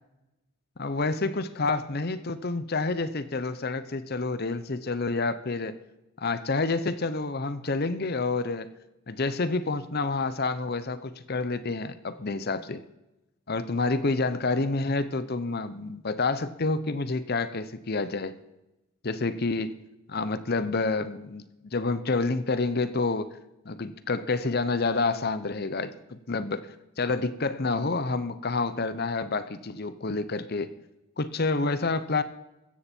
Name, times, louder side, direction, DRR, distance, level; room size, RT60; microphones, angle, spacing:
voice 1, 0.8-5.8 6.2-8.7 9.1-12.8 13.5-18.3 19.0-19.7 20.1-23.4 23.7-26.7 27.0-30.7 31.2-32.2, left 3 dB, 45° left, 14 dB, 0.7 m, -28 dB
16.0 x 14.0 x 4.5 m, 0.95 s
head